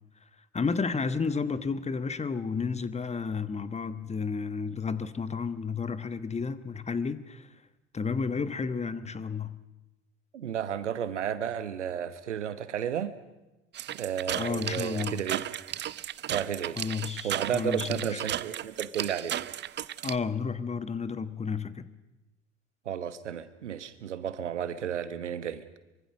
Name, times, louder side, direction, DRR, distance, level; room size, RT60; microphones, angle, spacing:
voice 1, 0.5-7.5 7.9-9.6 14.3-15.2 16.8-18.2 20.0-21.9, left 5 dB, 20° left, 1.3 m, -32 dB
voice 2, 10.3-13.1 13.9-15.4 16.3-16.8 17.2-19.4 22.8-25.6, right 9 dB, 80° right, 1.3 m, -33 dB
sound 1, 13.7-20.2, right 12 dB, 30° right, 0.7 m, -35 dB
24.0 x 23.0 x 6.4 m
figure-of-eight pair, 65°, 35 cm